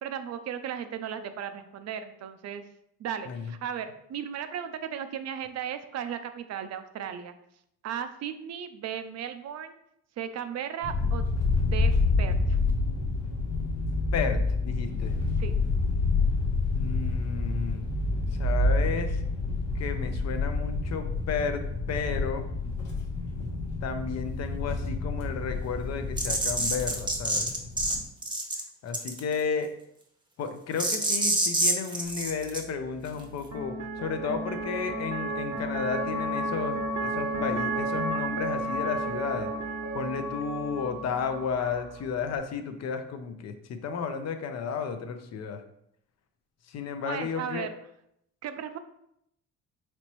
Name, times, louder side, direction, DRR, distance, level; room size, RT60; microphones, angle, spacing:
voice 1, 0.0-2.6 3.0-7.3 7.8-9.8 10.2-11.2 11.7-11.9 12.2-12.3 15.4-15.5 47.0-47.7 48.4-48.8, right 8 dB, 60° right, 9 dB, 0.4 m, -35 dB
sound 1, 10.8-28.0, left 3 dB, 85° left, 1.1 m, -28 dB
voice 2, 14.1-15.2 16.7-17.9 18.4-19.2 19.7-22.5 23.8-27.5 28.8-29.7 30.4-39.5 39.9-45.6 46.7-47.7, left 5 dB, 60° left, 8 dB, 0.5 m, -33 dB
sound 2, 26.2-28.0 28.2-28.6 28.9-29.3 30.8-32.6, right 2 dB, 15° right, 0.7 m, -26 dB
sound 3, 32.0-42.4, right 1 dB, 75° right, 0.8 m, -33 dB
4.2 x 3.0 x 3.0 m, 0.75 s
cardioid pair, 90°, 30 cm